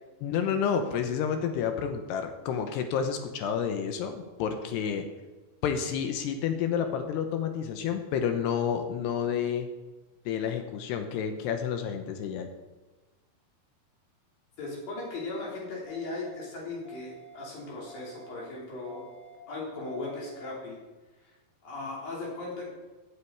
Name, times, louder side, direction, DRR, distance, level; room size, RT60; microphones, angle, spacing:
voice 1, 0.2-5.1 5.6-9.7 10.3-12.5, left 7 dB, 80° left, 7 dB, 3.0 m, -30 dB
voice 2, 14.6-19.1 19.5-20.8 21.6-22.7, left 3 dB, 55° left, -4 dB, 5.1 m, -37 dB
sound 1, 15.8-16.3 16.8-17.3 17.8-18.3 18.8-19.3 19.8-20.3, right 5 dB, 5° left, 1.7 m, -51 dB
16.5 x 8.7 x 4.7 m, 1.2 s
omnidirectional pair, 4.9 m